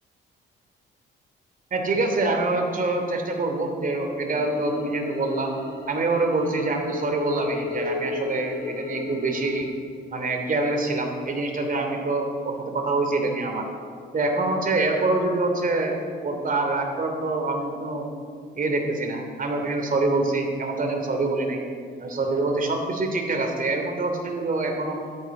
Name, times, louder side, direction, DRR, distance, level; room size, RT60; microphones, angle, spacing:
voice 1, 1.7-5.5 5.9-9.7 10.1-13.6 14.1-15.9 16.2-18.1 18.6-21.6 22.0-25.0, right 2 dB, 45° right, 3 dB, 2.9 m, -25 dB
sound 1, 4.3-9.6, left 3 dB, 90° left, 2.0 m, -34 dB
13.0 x 12.5 x 6.1 m, 2.1 s
cardioid pair, 90°, 20 cm